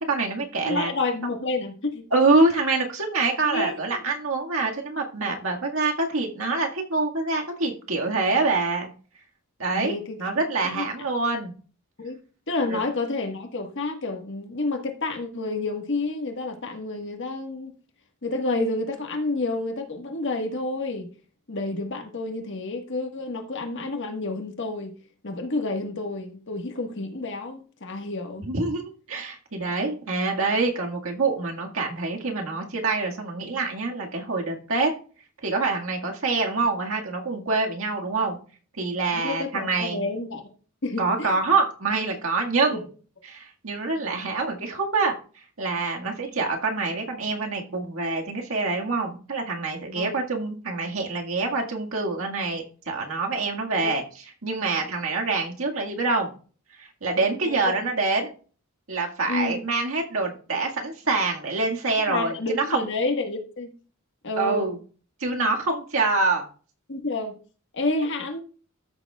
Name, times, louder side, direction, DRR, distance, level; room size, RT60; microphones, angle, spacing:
voice 1, 0.0-0.9 2.1-8.9 9.6-11.5 12.7-12.8 28.4-34.9 35.4-38.4 38.8-40.0 41.0-42.8 43.2-45.1 45.6-56.3 56.8-58.3 58.9-62.8 64.4-64.8 65.2-66.5, right 3 dB, 70° right, 1 dB, 1.9 m, -26 dB
voice 2, 0.6-2.0 3.4-4.0 9.7-10.2 10.6-10.9 12.0-12.2 12.5-17.7 18.2-21.1 21.5-24.9 25.2-28.5 39.1-40.4 40.8-41.4 42.7-42.8 49.9-50.2 53.7-53.9 57.4-57.8 59.3-59.6 62.1-63.7 64.2-64.7 66.9-67.4 67.7-68.4, left 2 dB, 60° left, 4 dB, 1.6 m, -29 dB
13.5 x 7.0 x 2.4 m, 0.39 s
head